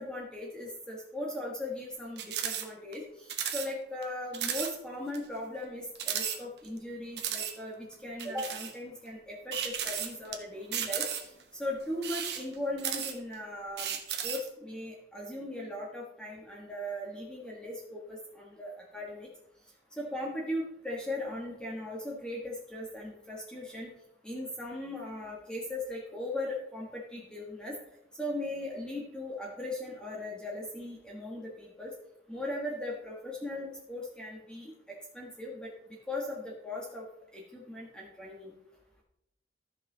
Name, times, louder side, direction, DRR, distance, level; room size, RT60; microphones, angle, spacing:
voice 1, 0.0-11.1 11.5-14.0 14.2-19.3 20.0-23.9 24.2-27.8 28.2-31.9 32.3-34.7 35.1-37.1 37.3-38.5, left 1 dB, 5° left, -3 dB, 1.2 m, -38 dB
sound 1, 2.2-2.7 2.9-3.0 3.3-3.7 4.0-4.1 4.3-4.7 5.1-5.2 6.0-6.8 7.2-7.5 8.2-8.7 9.5-10.3 10.7-11.4 11.9-13.3 13.8-14.5, right 9 dB, 60° right, 1.0 m, -34 dB
13.0 x 5.7 x 3.8 m, 0.83 s
head